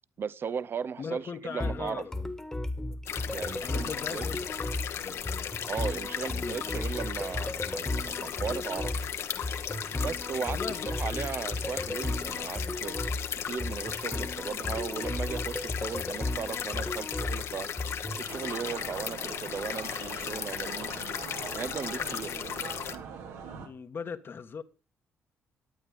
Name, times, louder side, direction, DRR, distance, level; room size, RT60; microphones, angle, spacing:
voice 1, 0.2-2.0 3.3-4.2 5.7-9.0 10.0-10.6 10.9-13.0 13.4-17.7 18.2-21.0 21.5-22.3, right 6 dB, 50° right, 0.6 m, -37 dB
voice 2, 1.0-2.3 2.9-3.0 3.6-4.5 5.0-5.5 6.3-6.9 8.5-8.6 9.4-9.5 10.4-10.9 22.1-22.5 23.6-24.6, left 6 dB, 50° left, 1.3 m, -40 dB
sound 1, 1.6-18.3, left 2 dB, 10° left, 1.4 m, -35 dB
sound 2, 3.1-23.0, left 8 dB, 70° left, 1.3 m, -36 dB
sound 3, 18.3-23.7, right 6 dB, 90° right, 2.4 m, -42 dB
12.0 x 8.8 x 5.0 m
cardioid pair, 80°, 5 cm